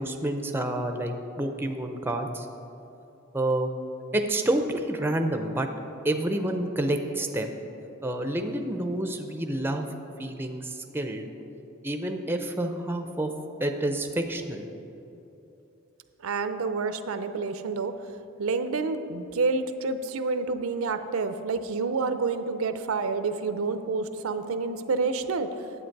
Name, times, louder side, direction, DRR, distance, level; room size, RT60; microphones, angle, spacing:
voice 1, 0.0-2.5 3.3-3.7 4.1-5.7 6.0-7.5 8.0-9.9 10.2-11.3 11.8-13.3 13.6-14.7, right 1 dB, 10° right, 5 dB, 0.5 m, -28 dB
voice 2, 16.2-17.9 18.4-25.5, right 4 dB, 75° right, 10 dB, 0.5 m, -28 dB
10.0 x 8.0 x 4.6 m, 3.0 s
head